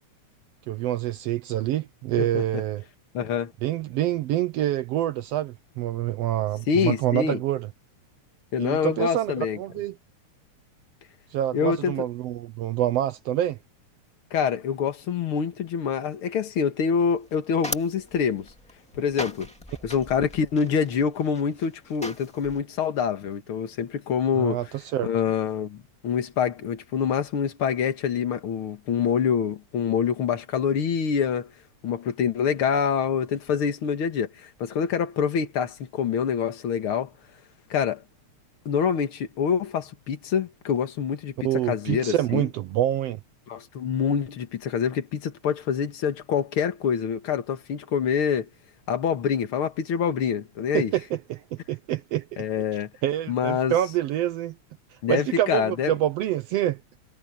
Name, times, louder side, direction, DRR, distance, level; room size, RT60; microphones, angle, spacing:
voice 1, 0.7-2.8 3.6-7.7 8.6-9.9 11.3-13.6 24.3-25.1 41.4-43.2 50.7-52.4 53.0-54.6 55.1-56.8, right 12 dB, 75° right, 1.5 m, -26 dB
voice 2, 2.2-2.6 3.1-3.5 6.7-7.4 8.5-9.6 11.5-12.0 14.3-18.5 18.9-19.5 19.8-24.6 25.0-31.5 31.8-37.1 37.7-38.0 38.7-41.3 41.7-42.5 43.5-48.5 48.9-50.9 52.4-52.9 53.3-53.7 55.0-55.9, left 7 dB, 50° left, 2.2 m, -26 dB
sound 1, 17.0-22.6, equal, 5° left, 1.6 m, -39 dB
omnidirectional pair, 3.4 m